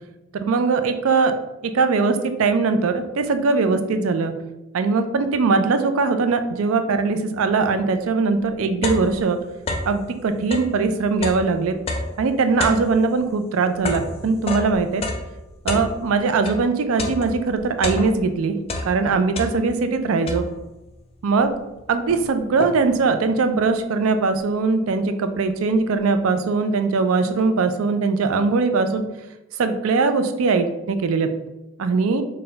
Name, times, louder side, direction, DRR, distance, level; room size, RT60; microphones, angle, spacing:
voice 1, 0.3-1.3 1.6-4.4 4.7-9.4 9.9-11.8 12.2-15.0 15.6-18.6 18.8-20.4 21.2-21.5 21.9-29.0 29.6-31.3 31.8-32.2, right 4 dB, 80° right, 8 dB, 0.4 m, -21 dB
sound 1, 7.9-8.0 8.4-10.0 10.4-16.7 17.0-18.4 18.6-19.9 20.3-20.8 21.4-21.5 21.8-23.0, left 2 dB, 30° left, 0.4 m, -30 dB
3.9 x 2.2 x 3.8 m, 0.97 s
head